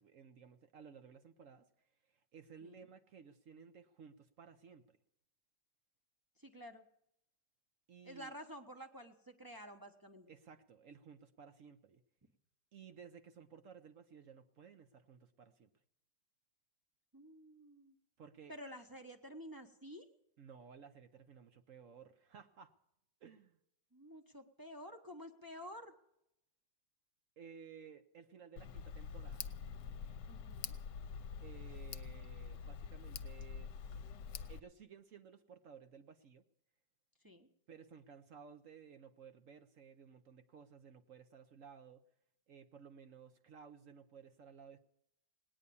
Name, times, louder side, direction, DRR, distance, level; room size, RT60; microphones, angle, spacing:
voice 1, 0.0-1.7 2.0-5.0 7.9-8.3 10.3-12.0 12.7-15.7 18.2-18.5 20.4-22.7 23.2-23.6 27.4-29.6 31.4-34.1 34.5-36.4 37.7-42.0 42.5-44.8, right 6 dB, 60° right, 9 dB, 1.0 m, -57 dB
voice 2, 6.4-6.8 8.0-10.3 17.1-18.0 18.5-20.0 23.9-25.9 30.3-30.7 37.2-37.5, equal, 15° right, 3 dB, 0.7 m, -51 dB
Tick, 28.6-34.6, left 6 dB, 75° left, 1.3 m, -46 dB
18.5 x 9.6 x 6.9 m, 0.80 s
omnidirectional pair, 1.9 m